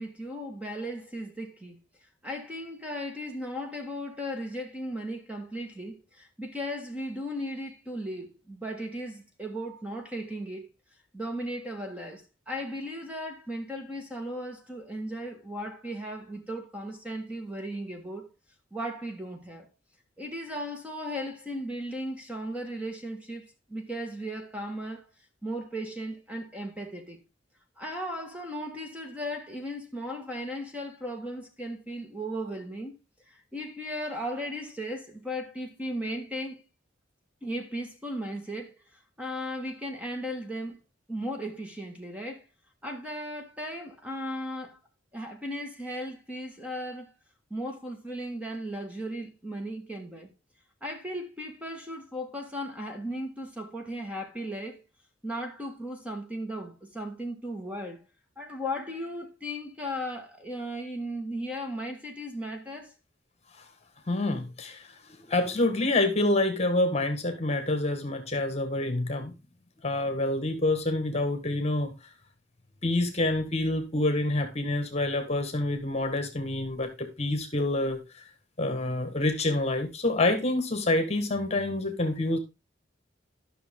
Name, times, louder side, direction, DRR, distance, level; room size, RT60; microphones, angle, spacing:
voice 1, 0.0-1.8 2.2-10.7 11.1-18.3 18.7-19.7 20.2-25.1 25.4-27.2 27.8-32.9 33.3-36.6 37.4-38.8 39.2-40.8 41.1-42.4 42.8-44.8 45.1-47.1 47.5-50.3 50.8-54.8 55.2-58.0 58.4-62.9, equal, 5° right, 1.7 m, -36 dB
voice 2, 64.1-64.9 65.3-69.4 69.8-71.9 72.8-78.0 78.6-82.4, left 2 dB, 35° left, 1.6 m, -27 dB
12.5 x 6.2 x 3.7 m
head